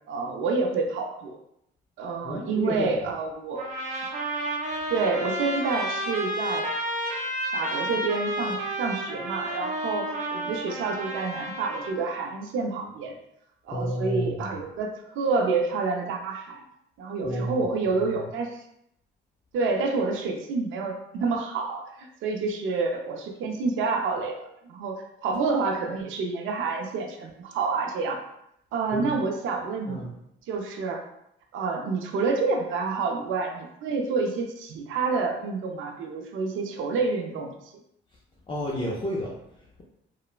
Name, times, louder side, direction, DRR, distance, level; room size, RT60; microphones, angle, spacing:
voice 1, 0.1-1.4 2.0-3.6 4.9-6.7 7.5-13.2 13.7-16.6 17.0-18.6 19.5-28.2 28.7-30.1 30.5-31.0 31.5-37.5, right 4 dB, 85° right, 3 dB, 0.5 m, -28 dB
voice 2, 2.2-2.9 13.7-14.5 17.2-17.6 18.0-18.2 28.9-29.1 29.9-30.1 38.5-39.8, equal, 25° left, -4 dB, 0.5 m, -31 dB
sound 1, 3.6-11.9, right 1 dB, 40° right, 0.6 m, -31 dB
3.0 x 2.0 x 2.4 m, 0.77 s
cardioid pair, 90°, 20 cm